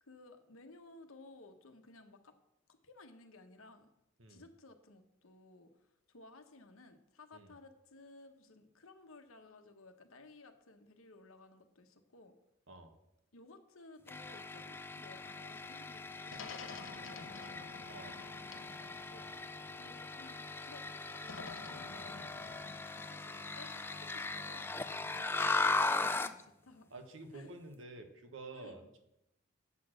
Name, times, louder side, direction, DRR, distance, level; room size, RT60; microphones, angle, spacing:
voice 1, 0.0-2.4 2.7-3.9 4.3-12.3 13.3-17.7 18.2-19.3 19.7-22.3 22.9-26.9 27.3-27.5 28.5-28.9, left 2 dB, 85° left, 6 dB, 1.1 m, -58 dB
sound 1, 14.1-26.4, left 3 dB, 10° left, 0.3 m, -38 dB
sound 2, 16.3-20.4 21.2-22.9, left 4 dB, 70° left, 0.8 m, -51 dB
voice 2, 17.9-18.2 21.8-22.1 26.9-29.0, right 2 dB, 70° right, 6 dB, 1.3 m, -50 dB
8.4 x 6.2 x 6.4 m, 0.85 s
head